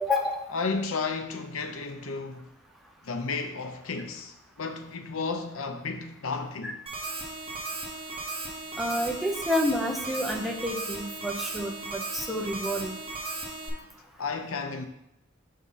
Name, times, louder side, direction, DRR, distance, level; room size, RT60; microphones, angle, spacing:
voice 1, 0.0-0.4 6.6-6.7 8.8-13.0, left 1 dB, ahead, 0.6 m, -29 dB
voice 2, 0.5-2.5 3.0-6.8 14.2-14.9, left 4 dB, 80° left, 0.7 m, -33 dB
sound 1, 6.9-13.7, right 2 dB, 30° right, 1.0 m, -36 dB
5.3 x 3.7 x 5.6 m
head